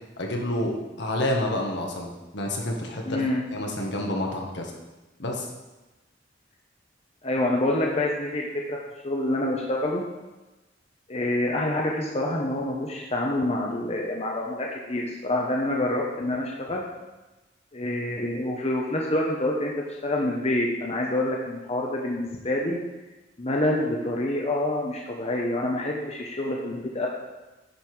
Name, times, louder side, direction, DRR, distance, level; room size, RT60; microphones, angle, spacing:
voice 1, 0.2-2.1 2.3-3.2 3.5-4.7 5.2-5.5, left 1 dB, 65° left, 0 dB, 1.7 m, -28 dB
voice 2, 3.0-3.4 7.2-8.8 9.0-10.0 11.1-16.8 17.7-19.7 20.0-22.8 23.4-27.1, left 1 dB, 35° left, -2 dB, 1.1 m, -27 dB
10.5 x 5.4 x 6.2 m, 1.1 s
head